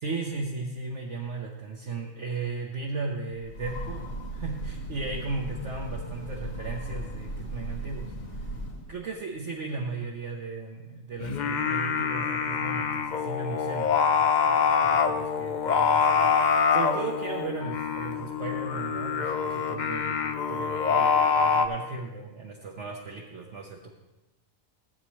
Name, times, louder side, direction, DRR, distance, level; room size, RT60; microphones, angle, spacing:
voice 1, 0.0-8.1 8.9-23.8, right 3 dB, 60° right, -1 dB, 1.2 m, -36 dB
Train, 3.3-9.0, right 1 dB, 75° left, 2.4 m, -37 dB
Singing, 11.2-21.7, left 6 dB, 55° left, 0.5 m, -25 dB
16.0 x 8.7 x 3.1 m, 1.0 s
omnidirectional pair, 1.4 m